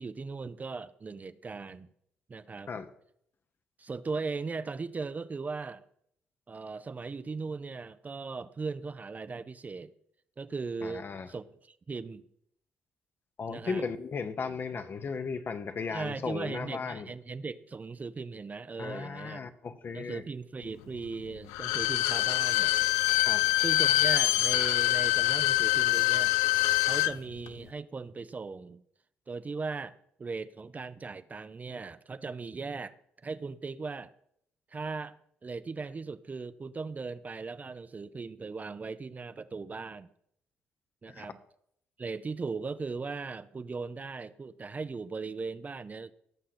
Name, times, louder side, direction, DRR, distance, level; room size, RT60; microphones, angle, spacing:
voice 1, 0.0-1.9 2.3-2.7 3.8-5.8 6.5-9.9 10.4-12.2 13.5-13.9 15.9-19.4 19.9-22.8 23.6-26.4 26.8-28.8 29.3-32.9 33.2-34.1 34.7-35.1 35.4-40.1 41.0-41.4 42.0-46.1, right 4 dB, 35° right, 13 dB, 0.6 m, -38 dB
voice 2, 10.8-11.3 13.4-17.1 18.8-20.2 23.2-23.5 41.1-41.2, left 5 dB, 45° left, 9 dB, 1.0 m, -36 dB
Bowed string instrument, 21.5-27.1 27.5-27.6, left 17 dB, 85° left, 0.3 m, -25 dB
17.0 x 6.4 x 4.3 m, 0.71 s
supercardioid pair, 60°, 5 cm